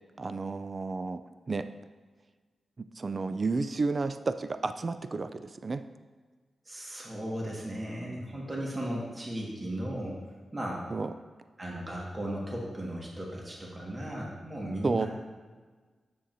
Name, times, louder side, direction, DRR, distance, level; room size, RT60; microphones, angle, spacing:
voice 1, 0.2-1.2 1.5-1.7 3.0-5.9 10.9-11.1 14.8-15.1, right 3 dB, 40° right, 11 dB, 0.3 m, -31 dB
voice 2, 6.6-10.2 10.5-10.9 11.6-15.1, right 1 dB, 25° right, -3 dB, 1.6 m, -36 dB
7.4 x 6.8 x 2.6 m, 1.4 s
cardioid pair, 85°, 0 cm